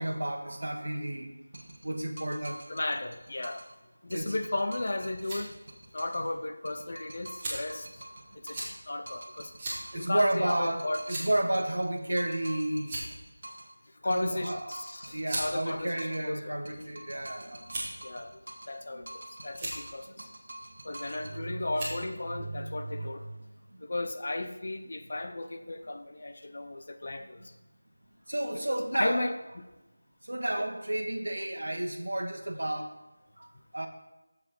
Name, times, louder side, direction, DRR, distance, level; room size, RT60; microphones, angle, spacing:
voice 1, 0.0-1.3 1.8-2.6 4.1-4.3 6.2-6.3 9.9-13.0 14.1-14.8 15.1-17.8 18.9-19.1 20.2-20.3 21.3-21.6 22.3-23.1 23.7-23.8 28.3-29.3 30.2-32.9 33.4-33.5 33.7-33.9, right 1 dB, 75° right, 5 dB, 1.3 m, -32 dB
sound 1, 1.5-3.8 4.1-6.3 6.6-8.8 9.1-13.8 14.1-16.3 16.6-18.8 19.1-21.4, right 1 dB, 50° right, 1.4 m, -47 dB
voice 2, 2.7-3.6 4.0-5.5 5.9-8.0 8.4-9.5 9.9-11.0 14.0-16.6 18.0-18.4 18.7-20.3 20.8-23.3 23.8-27.5 28.5-29.3 30.6-30.7, left 2 dB, 35° left, 8 dB, 0.5 m, -35 dB
sound 2, 5.2-5.4 6.2-6.3 7.4-7.8 8.5-8.7 9.6-9.8 10.2-10.3 11.1-11.4 12.3-12.5 12.8-13.3 14.4-14.6 15.2-15.5 16.3-16.9 17.7-18.0 18.8-19.2 19.5-19.8 21.0-21.3 21.7-22.0, right 1 dB, 10° right, 1.4 m, -36 dB
7.2 x 6.5 x 5.2 m, 1.0 s
figure-of-eight pair, 180°, 0 cm